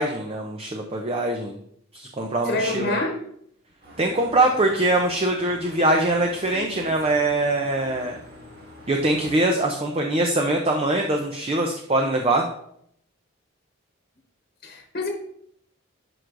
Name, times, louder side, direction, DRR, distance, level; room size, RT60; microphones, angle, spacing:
voice 1, 0.0-1.6 1.9-3.0 4.0-8.2 8.9-12.5, right 2 dB, 25° right, 2 dB, 0.5 m, -23 dB
voice 2, 2.4-3.1 14.6-15.1, left 2 dB, 45° left, 1 dB, 1.1 m, -26 dB
sound 1, 3.8-9.3, equal, 45° right, 1.8 m, -43 dB
11.0 x 4.6 x 2.5 m, 0.70 s
head